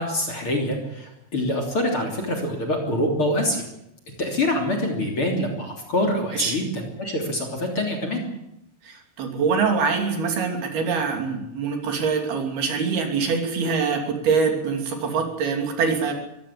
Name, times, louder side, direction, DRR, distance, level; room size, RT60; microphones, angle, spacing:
voice 1, 0.0-3.6 4.2-8.2, left 1 dB, 35° left, 2 dB, 3.6 m, -25 dB
voice 2, 8.8-16.1, right 5 dB, 65° right, 4 dB, 4.8 m, -24 dB
23.5 x 16.0 x 8.5 m, 0.83 s
omnidirectional pair, 4.9 m